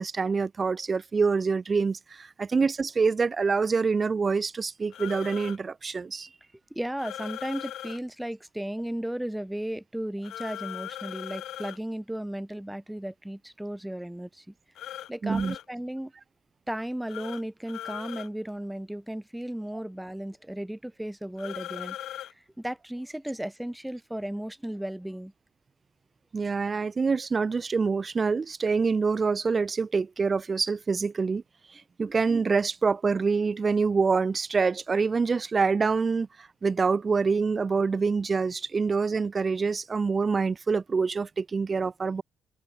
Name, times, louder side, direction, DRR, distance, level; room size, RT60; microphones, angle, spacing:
voice 1, 0.0-6.3 15.2-15.5 26.3-31.4 31.7-42.2, right 4 dB, 35° right, 1.6 m, -26 dB
sound 1, 4.9-5.6 7.0-8.0 10.2-11.8 14.8-15.7 17.1-17.4 17.7-18.3 21.4-22.3, left 12 dB, 80° left, 2.0 m, -39 dB
voice 2, 6.7-14.5 15.1-16.1 16.7-25.3, right 1 dB, 5° right, 4.2 m, -35 dB
cardioid pair, 90°, 0 cm